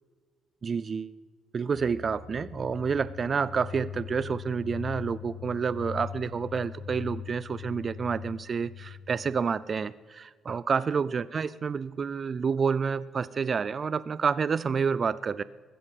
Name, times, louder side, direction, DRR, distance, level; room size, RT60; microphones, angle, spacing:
voice 1, 0.6-1.2 1.5-15.4, right 6 dB, 45° right, 18 dB, 0.4 m, -29 dB
sound 1, 1.7-9.5, left 9 dB, 80° left, 0.5 m, -41 dB
15.5 x 13.0 x 5.4 m, 1.5 s
cardioid pair, 90°, 0 cm